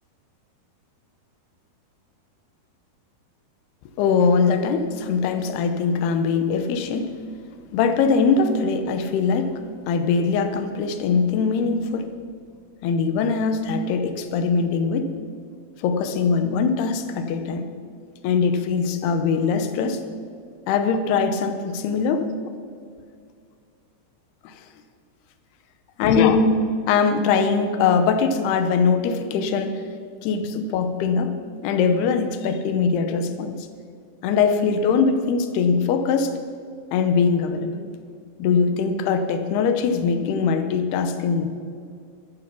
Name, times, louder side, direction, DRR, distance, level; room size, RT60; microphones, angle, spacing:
voice 1, 4.0-7.1 7.7-9.5 9.9-12.1 12.8-15.1 15.8-17.7 18.2-20.0 20.7-22.3 24.4-24.5 26.0-26.5 26.9-29.8 30.2-31.3 31.6-33.6 34.2-36.3 36.9-37.9 38.4-41.5, left 5 dB, 75° left, 8 dB, 2.7 m, -21 dB
12.5 x 11.0 x 6.1 m, 2.3 s
omnidirectional pair, 4.9 m